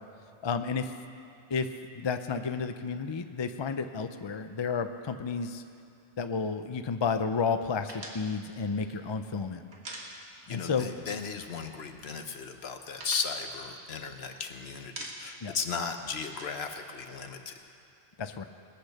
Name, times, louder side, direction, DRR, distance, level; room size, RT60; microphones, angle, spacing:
voice 1, 0.4-0.9 1.5-1.7 2.0-5.6 6.2-9.6 10.5-10.9 15.4-15.5 18.2-18.4, left 5 dB, 40° left, 8 dB, 0.4 m, -31 dB
sound 1, 7.9-10.7 10.9-11.1 11.4-12.1 12.4-14.4 14.8-15.5 15.8-17.6, right 2 dB, 65° right, 2.0 m, -45 dB
voice 2, 10.5-17.5, left 5 dB, 60° left, 6 dB, 1.2 m, -36 dB
20.5 x 8.4 x 6.6 m, 2.7 s
omnidirectional pair, 1.2 m